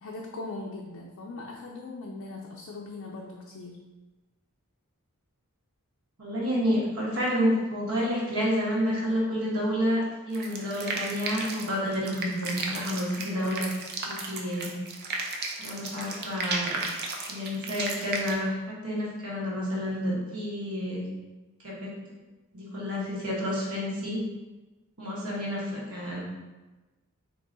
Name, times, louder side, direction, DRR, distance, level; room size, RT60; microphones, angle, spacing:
voice 1, 0.0-3.8, left 2 dB, 60° left, -1 dB, 0.4 m, -40 dB
voice 2, 6.2-13.7 14.1-14.7 15.6-16.8 17.3-21.0 21.6-21.9 22.5-24.2 25.0-26.2, equal, 65° right, -5 dB, 1.2 m, -29 dB
Eating Flesh (Loop), 10.3-18.3, right 3 dB, 45° right, 0.5 m, -34 dB
3.7 x 2.9 x 3.9 m, 1.2 s
head